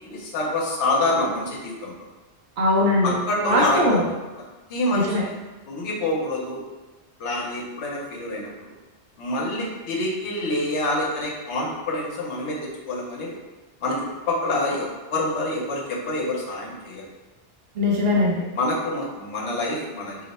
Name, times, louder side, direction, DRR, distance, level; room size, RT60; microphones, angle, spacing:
voice 1, 0.0-2.0 3.0-4.1 4.7-5.2 5.7-6.6 7.2-8.5 9.2-13.4 13.8-17.0 18.5-20.2, left 2 dB, 75° left, -3 dB, 1.0 m, -26 dB
voice 2, 2.6-3.2 3.4-4.0 4.9-5.2 17.8-18.3, left 1 dB, 65° right, -2 dB, 0.8 m, -20 dB
2.8 x 2.0 x 4.0 m, 1.2 s
omnidirectional pair, 1.2 m